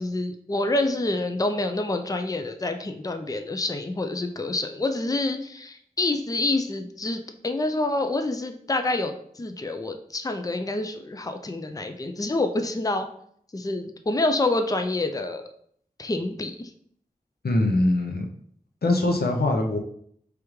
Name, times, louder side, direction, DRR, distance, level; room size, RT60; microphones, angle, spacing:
voice 1, 0.0-13.1 13.5-15.4 16.0-16.7, left 2 dB, 25° left, 6 dB, 0.4 m, -27 dB
voice 2, 17.4-18.3 18.8-19.8, left 2 dB, 85° left, 1 dB, 0.7 m, -22 dB
4.9 x 3.4 x 3.1 m, 0.64 s
wide cardioid pair, 45°, 16 cm